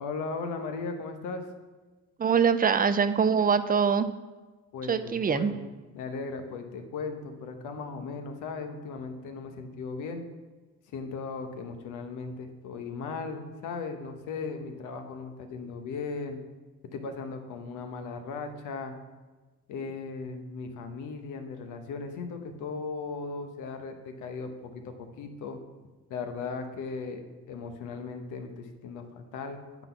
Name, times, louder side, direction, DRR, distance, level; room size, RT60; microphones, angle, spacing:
voice 1, 0.0-1.4 4.7-5.6 5.9-10.2 10.9-16.4 16.9-18.9 19.7-25.6 26.1-27.2 27.5-29.7, left 4 dB, 90° left, 6 dB, 0.9 m, -37 dB
voice 2, 2.2-4.1 4.9-5.5, right 6 dB, 30° right, 12 dB, 0.4 m, -23 dB
8.9 x 4.0 x 5.7 m, 1.3 s
cardioid pair, 90°, 30 cm